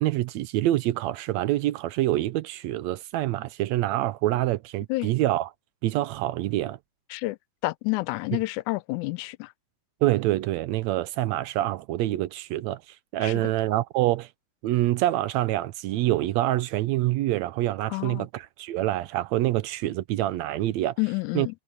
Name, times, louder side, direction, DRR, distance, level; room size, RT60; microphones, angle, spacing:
voice 1, 0.0-5.5 5.8-6.8 8.3-8.4 10.0-14.3 14.6-21.0 21.3-21.6, right 15 dB, 80° right, 1.8 m, -26 dB
voice 2, 7.6-9.5 13.2-13.5 17.9-18.3 21.0-21.5, left 22 dB, 85° left, 2.0 m, -29 dB
omnidirectional pair, 3.4 m